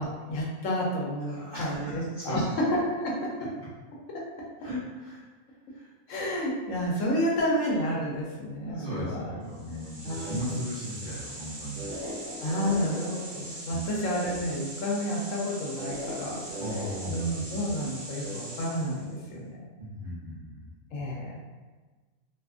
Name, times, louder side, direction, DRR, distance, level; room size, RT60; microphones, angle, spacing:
voice 1, 0.0-2.4 2.7-3.5 4.1-4.2 6.1-9.3 10.0-10.6 12.4-16.5 17.1-19.7 20.9-21.4, equal, 70° left, -3 dB, 0.9 m, -30 dB
voice 2, 1.2-2.4 4.6-5.2 5.7-5.9 8.6-11.8 13.7-13.9 16.6-17.3 19.8-20.7, equal, 50° right, -11 dB, 0.5 m, -37 dB
sound 1, 9.5-19.1, right 1 dB, 70° right, 1.0 m, -39 dB
2.7 x 2.3 x 2.3 m, 1.3 s
omnidirectional pair, 1.5 m